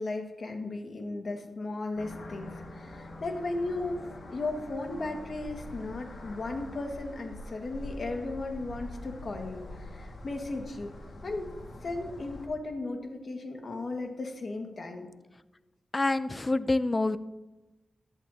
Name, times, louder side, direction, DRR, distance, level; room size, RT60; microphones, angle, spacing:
voice 1, 0.0-9.6 9.9-10.9 11.2-11.5 11.8-15.1, left 2 dB, 65° left, 3 dB, 1.7 m, -36 dB
sound 1, 2.0-12.5, left 1 dB, 85° left, 1.9 m, -44 dB
voice 2, 15.9-17.2, left 2 dB, 35° left, 14 dB, 0.4 m, -26 dB
15.0 x 11.0 x 2.8 m, 1.1 s
cardioid pair, 55°, 0 cm